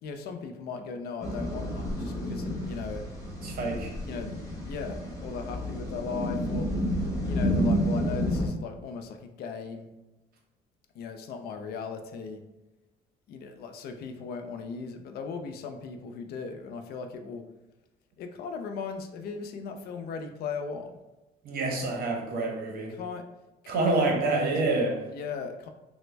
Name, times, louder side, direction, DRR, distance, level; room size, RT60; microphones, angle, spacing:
voice 1, 0.0-3.1 4.0-4.3 4.7-6.7 7.2-9.9 10.9-12.4 13.3-17.5 18.2-21.0 22.9-23.2 23.6-24.8 25.1-25.7, left 5 dB, 65° left, 6 dB, 0.4 m, -37 dB
sound 1, 1.2-8.5, equal, 20° left, 1.0 m, -30 dB
voice 2, 3.4-3.9 21.4-22.9 23.7-25.0, right 3 dB, 60° right, 0 dB, 0.8 m, -27 dB
3.3 x 2.1 x 3.2 m, 1.0 s
cardioid pair, 110°, 17 cm